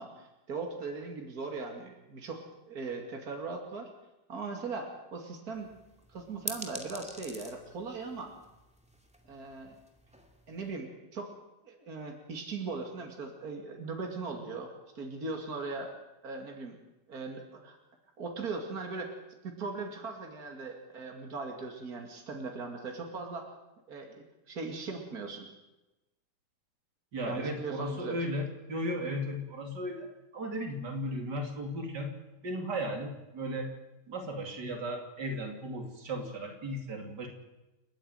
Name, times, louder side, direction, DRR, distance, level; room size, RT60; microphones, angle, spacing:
voice 1, 0.0-3.9 4.3-5.7 6.1-8.3 9.3-9.7 10.5-11.3 11.6-15.9 16.2-16.8 17.1-17.8 18.2-19.1 19.4-23.5 23.9-25.5 27.3-28.2, right 4 dB, 60° right, 2 dB, 3.0 m, -39 dB
sound 1, 5.5-10.7, equal, 5° right, 2.2 m, -46 dB
voice 2, 27.1-32.1 32.4-33.7 34.1-37.3, equal, 85° right, 3 dB, 3.4 m, -35 dB
30.0 x 10.0 x 9.1 m, 1.0 s
omnidirectional pair, 1.8 m